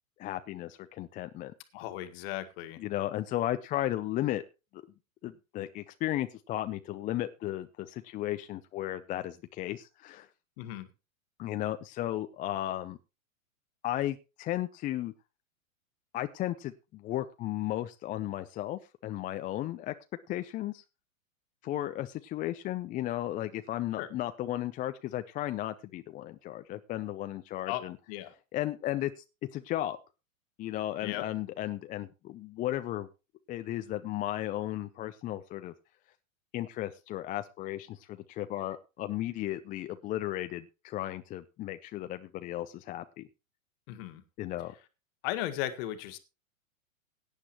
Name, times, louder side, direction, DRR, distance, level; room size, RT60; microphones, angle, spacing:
voice 1, 0.2-1.5 2.8-4.4 4.7-4.8 5.2-10.3 11.4-13.0 13.8-15.1 16.1-19.9 20.3-20.8 21.6-28.0 28.5-29.1 29.5-30.0 30.6-33.1 33.5-35.7 36.5-43.3 44.4-44.7, left 14 dB, 20° left, 10 dB, 0.5 m, -35 dB
voice 2, 1.7-2.8 10.6-10.9 24.0-24.1 27.7-28.3 31.0-31.2 43.9-44.2 45.2-46.2, left 13 dB, 45° left, 9 dB, 1.8 m, -36 dB
17.0 x 9.9 x 3.0 m, 0.29 s
hypercardioid pair, 110°, 41 cm